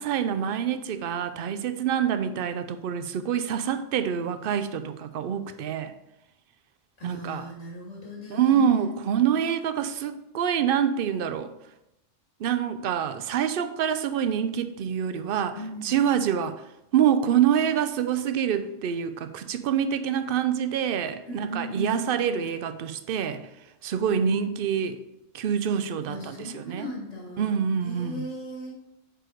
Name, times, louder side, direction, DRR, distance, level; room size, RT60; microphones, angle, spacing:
voice 1, 0.0-5.9 7.0-7.5 8.3-11.5 12.4-15.6 15.8-16.6 16.9-23.4 23.8-25.0 25.3-26.9 27.4-28.2, right 8 dB, 60° right, 10 dB, 0.7 m, -26 dB
voice 2, 7.0-8.9 15.5-16.0 21.3-22.0 24.1-24.4 26.1-27.5 27.8-28.8, equal, 90° left, -3 dB, 2.5 m, -37 dB
6.3 x 4.7 x 5.0 m, 0.89 s
omnidirectional pair, 1.3 m